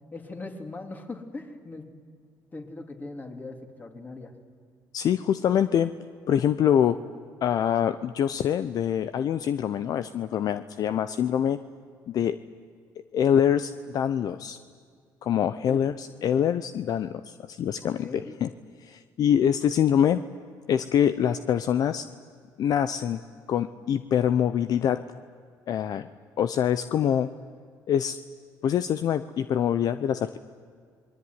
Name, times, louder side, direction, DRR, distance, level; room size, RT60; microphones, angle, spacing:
voice 1, 0.1-1.9 2.5-4.3 15.7-15.9 17.8-18.3, left 2 dB, 25° left, 5 dB, 3.3 m, -40 dB
voice 2, 4.9-5.9 6.3-7.0 7.4-11.6 12.1-12.4 13.1-14.6 15.2-18.5 18.8-20.2 20.7-22.1 22.6-23.2 23.5-25.0 25.7-26.1 26.4-27.3 27.9-28.2 28.6-30.4, left 9 dB, 60° left, 12 dB, 0.8 m, -24 dB
27.0 x 21.5 x 9.8 m, 2.1 s
cardioid pair, 105°, 7 cm